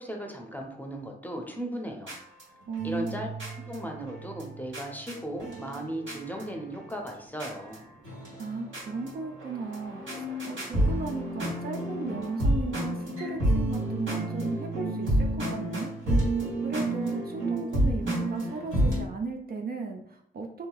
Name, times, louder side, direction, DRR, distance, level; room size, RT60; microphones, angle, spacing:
voice 1, 0.0-2.2 2.8-3.3 3.7-7.8, right 1 dB, 10° left, 2 dB, 0.7 m, -36 dB
sound 1, 2.1-7.1 7.4-7.8 8.0-19.0, right 1 dB, 65° right, 1.3 m, -30 dB
voice 2, 2.7-3.3 8.4-15.9 16.6-20.7, right 4 dB, 45° right, 3 dB, 0.5 m, -36 dB
2.9 x 2.6 x 2.3 m, 0.66 s
supercardioid pair, 40°, 21 cm